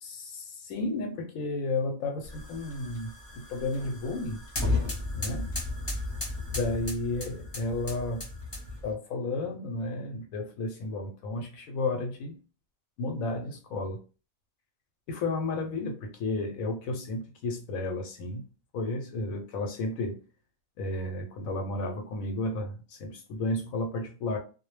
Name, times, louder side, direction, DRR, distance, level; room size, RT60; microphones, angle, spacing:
voice 1, 0.0-4.4 5.1-5.5 6.5-8.3 8.8-12.4 13.0-14.0 15.1-18.4 18.7-20.2 20.8-24.4, left 2 dB, 75° left, 1.0 m, -32 dB
sound 1, 2.2-8.9, left 2 dB, 25° left, 0.7 m, -34 dB
2.3 x 2.1 x 3.1 m
omnidirectional pair, 1.5 m